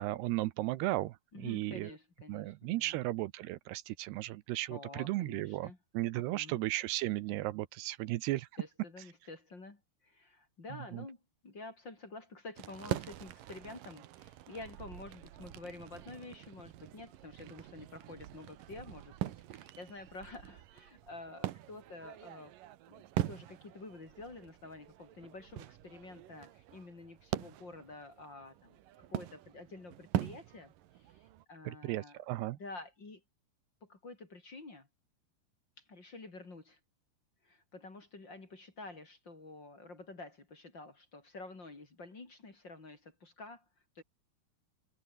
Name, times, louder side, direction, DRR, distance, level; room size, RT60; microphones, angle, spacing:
voice 1, 0.0-1.9 2.3-8.5 10.9-11.1 31.6-32.6, right 17 dB, 80° right, 2.9 m, -35 dB
voice 2, 1.3-3.0 4.7-5.8 6.1-6.6 8.6-22.5 22.9-28.8 29.1-32.2 32.5-33.2 33.8-34.9 35.8-36.8 37.4-43.6 44.0-44.1, left 3 dB, 30° left, 3.9 m, -49 dB
sound 1, 12.6-31.4, right 13 dB, 65° right, 2.5 m, -43 dB
omnidirectional pair, 4.7 m